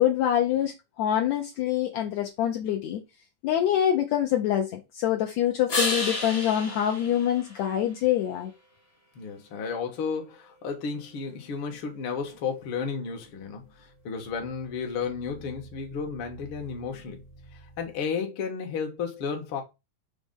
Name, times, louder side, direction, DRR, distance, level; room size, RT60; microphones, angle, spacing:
voice 1, 0.0-3.0 3.4-8.5, left 10 dB, 70° left, 1.9 m, -25 dB
sound 1, 5.7-8.2 14.0-18.0, left 2 dB, 30° left, 1.1 m, -35 dB
voice 2, 9.2-17.2 17.8-19.6, left 5 dB, 55° left, 1.8 m, -33 dB
6.3 x 3.3 x 5.2 m
omnidirectional pair, 3.6 m